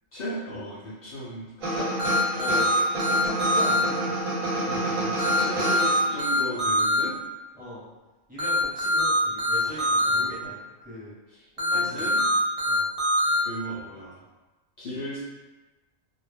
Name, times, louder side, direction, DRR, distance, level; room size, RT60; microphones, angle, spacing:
voice 1, 0.1-1.8 2.6-2.8 4.6-7.1 9.6-10.5 11.3-12.2 13.4-14.2 14.8-15.2, equal, 60° left, -8 dB, 0.6 m, -36 dB
sound 1, 1.6-6.4, right 1 dB, 85° right, 1.1 m, -29 dB
sound 2, 2.0-3.8 5.2-7.0 8.4-10.2 11.6-13.4, equal, 40° right, 0.5 m, -23 dB
voice 2, 2.3-2.7 3.0-4.1 7.6-7.8 8.3-10.5 10.8-11.1 11.6-12.0 12.7-12.8, left 1 dB, 10° right, -10 dB, 0.8 m, -38 dB
2.2 x 2.1 x 3.2 m, 1.2 s
omnidirectional pair, 1.4 m